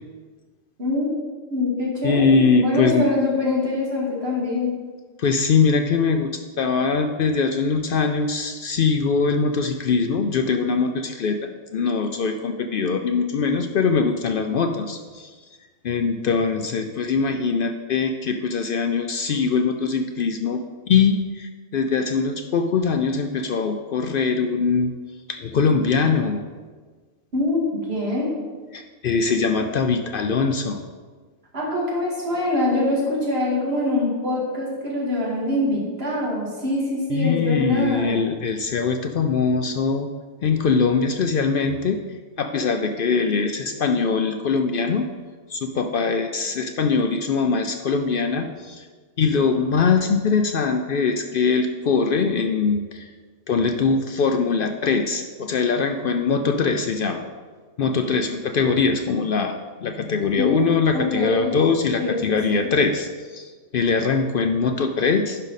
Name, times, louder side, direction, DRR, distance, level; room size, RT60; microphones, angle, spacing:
voice 1, 0.8-1.1 1.5-4.7 27.3-27.6 27.9-28.3 31.5-38.2 60.3-61.5 62.0-62.7, left 2 dB, 50° right, -4 dB, 2.3 m, -24 dB
voice 2, 2.0-3.1 5.2-15.4 15.8-24.9 25.3-26.4 28.7-30.8 37.1-40.1 40.4-45.1 45.5-48.9 49.2-53.1 53.5-57.2 57.8-59.5 59.8-65.4, left 5 dB, 70° left, 6 dB, 0.5 m, -22 dB
11.0 x 5.2 x 4.1 m, 1.4 s
omnidirectional pair, 1.4 m